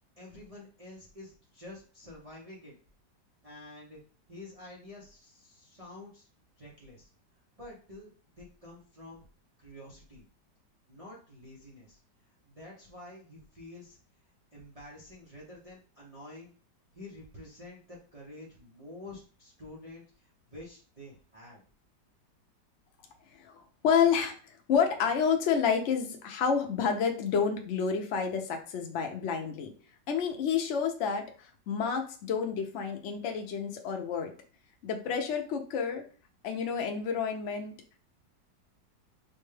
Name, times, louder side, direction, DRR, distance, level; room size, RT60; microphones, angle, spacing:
voice 1, 0.2-2.7 3.4-4.0 4.3-6.3 6.6-7.1 7.6-9.2 9.6-10.2 10.9-12.0 12.4-14.0 14.5-16.5 16.9-21.6, left 2 dB, 40° right, -5 dB, 0.5 m, -49 dB
voice 2, 23.3-29.7 30.1-34.3 34.8-36.0 36.4-37.7, left 6 dB, 70° left, 4 dB, 0.7 m, -29 dB
4.4 x 2.2 x 3.2 m, 0.40 s
omnidirectional pair, 1.9 m